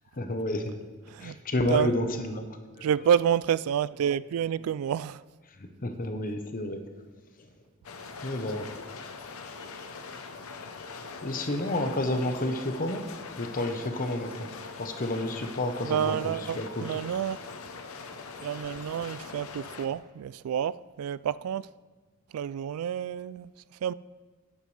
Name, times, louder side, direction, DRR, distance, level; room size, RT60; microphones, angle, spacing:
voice 1, 0.2-0.8 1.2-2.5 2.8-2.9 5.8-6.8 8.2-8.7 11.2-13.0 13.4-14.5 14.8-16.9, left 1 dB, 40° left, 1.0 m, -30 dB
voice 2, 2.8-5.2 15.8-17.4 18.4-21.7 22.3-23.5 23.8-23.9, right 9 dB, 85° right, 0.3 m, -29 dB
sound 1, 7.8-19.9, left 4 dB, 80° left, 0.8 m, -42 dB
12.0 x 10.0 x 3.3 m
head